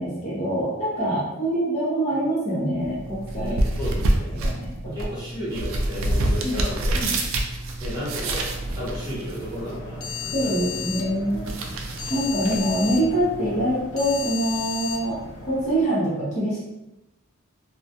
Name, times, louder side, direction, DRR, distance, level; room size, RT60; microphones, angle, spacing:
voice 1, 0.0-3.6 4.3-4.9 6.4-6.6 6.9-7.1 10.3-11.5 12.1-16.6, right 1 dB, 35° left, -7 dB, 0.7 m, -25 dB
voice 2, 1.0-1.3 3.3-4.4 4.8-7.0 7.8-10.8 12.1-12.3, equal, 20° right, -9 dB, 0.9 m, -34 dB
sound 1, 2.8-13.8, right 1 dB, 70° right, 0.3 m, -28 dB
sound 2, 8.5-15.8, left 7 dB, 85° left, 0.5 m, -35 dB
2.2 x 2.1 x 2.7 m, 0.93 s
head